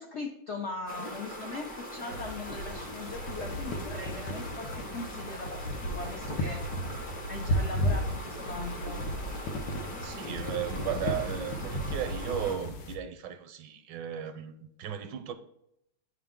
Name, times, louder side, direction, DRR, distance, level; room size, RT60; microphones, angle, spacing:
voice 1, 0.0-6.6 7.3-9.0, left 3 dB, 70° left, 0.6 m, -40 dB
sound 1, 0.9-12.5, equal, 30° left, 0.7 m, -41 dB
sound 2, 2.1-13.0, equal, 85° left, 1.5 m, -34 dB
voice 2, 10.0-14.5 14.8-15.3, right 9 dB, 80° right, 1.3 m, -35 dB
9.4 x 3.6 x 3.6 m
omnidirectional pair, 2.0 m